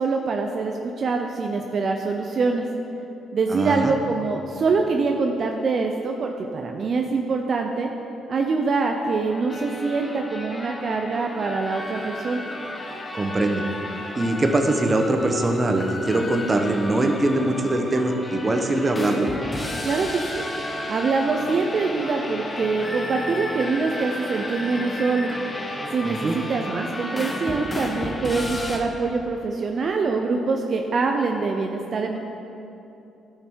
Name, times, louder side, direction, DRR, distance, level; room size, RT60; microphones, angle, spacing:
voice 1, 0.0-2.7 3.3-7.9 8.3-12.4 19.8-20.4 20.9-25.3 25.9-32.2, right 4 dB, 50° right, 3 dB, 0.6 m, -24 dB
voice 2, 3.5-3.9 13.1-13.7 14.1-19.3 26.0-26.4, right 2 dB, 30° right, 5 dB, 0.9 m, -22 dB
sound 1, 9.3-28.8, left 1 dB, 25° left, 1.1 m, -33 dB
11.0 x 6.6 x 4.6 m, 2.9 s
cardioid pair, 90°, 0 cm